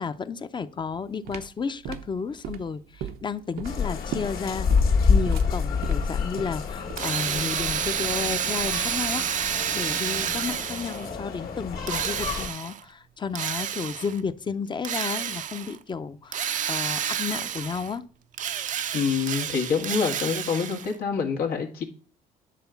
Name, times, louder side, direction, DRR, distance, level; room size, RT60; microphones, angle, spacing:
voice 1, 0.0-9.5 9.7-18.0, left 5 dB, 30° left, 0.7 m, -32 dB
sound 1, 0.8-7.3, right 9 dB, 80° right, 0.8 m, -38 dB
sound 2, 3.6-12.5, left 5 dB, 70° left, 1.9 m, -27 dB
Drill, 7.0-11.1 11.9-12.8 13.4-14.2 14.8-15.8 16.3-18.0 18.3-21.0, right 9 dB, 55° right, 0.6 m, -30 dB
voice 2, 18.9-21.8, left 6 dB, 85° left, 1.8 m, -26 dB
10.5 x 3.8 x 7.0 m
cardioid pair, 95°, 15 cm